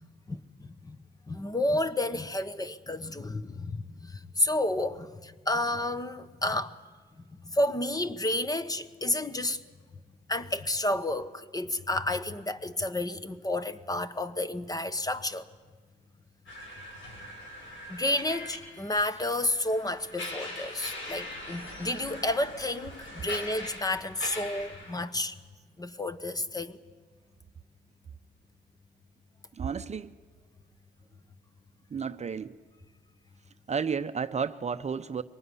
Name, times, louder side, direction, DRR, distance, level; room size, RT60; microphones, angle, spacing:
voice 1, 0.3-1.0 1.3-6.8 7.4-9.6 10.3-15.5 17.9-25.4 25.8-26.8, left 1 dB, 20° left, 1.1 m, -31 dB
sound 1, 16.5-25.0, left 1 dB, 75° left, 6.8 m, -42 dB
voice 2, 29.6-30.1 31.9-32.6 33.7-35.2, right 6 dB, 35° right, 0.7 m, -32 dB
23.5 x 19.5 x 9.8 m
cardioid pair, 90°, 20 cm